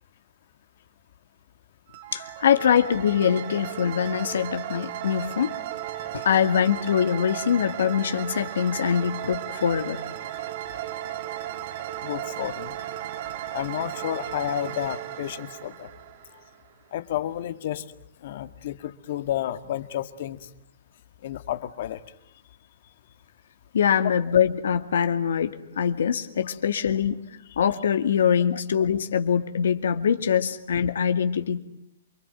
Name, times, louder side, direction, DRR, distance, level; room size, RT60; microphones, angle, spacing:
sound 1, 1.9-16.7, right 12 dB, 50° right, 1.9 m, -35 dB
voice 1, 2.1-5.5 6.1-10.0 23.7-27.2 27.6-31.6, left 8 dB, 75° left, 9 dB, 2.1 m, -23 dB
voice 2, 12.0-12.8 13.5-15.9 16.9-18.0 18.2-20.5 21.2-22.0, left 12 dB, 55° left, 11 dB, 1.8 m, -31 dB
28.0 x 22.5 x 9.1 m, 0.71 s
hypercardioid pair, 150°, 0 cm